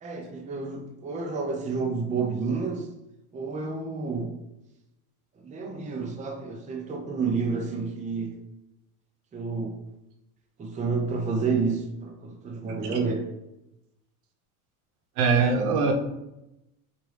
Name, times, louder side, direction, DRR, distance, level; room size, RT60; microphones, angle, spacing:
voice 1, 0.0-2.9 3.3-4.3 5.4-8.3 9.3-9.8 10.6-13.3, right 4 dB, 15° right, 2 dB, 0.6 m, -30 dB
voice 2, 15.2-15.9, right 4 dB, 85° right, 2 dB, 0.9 m, -21 dB
4.4 x 2.6 x 3.2 m, 0.92 s
supercardioid pair, 105°, 43 cm